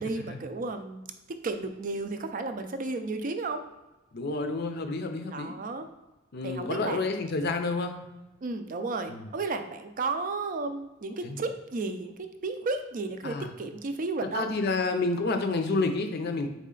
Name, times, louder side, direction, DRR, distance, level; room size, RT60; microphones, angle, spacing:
voice 1, 0.0-3.6 5.3-5.9 6.4-7.0 8.4-14.5, right 3 dB, 40° right, 7 dB, 0.4 m, -33 dB
voice 2, 4.1-5.5 6.3-8.1 9.1-9.3 11.2-11.4 13.2-13.5 14.3-16.5, left 3 dB, 50° left, 6 dB, 0.5 m, -29 dB
4.2 x 3.2 x 3.8 m, 1.0 s
head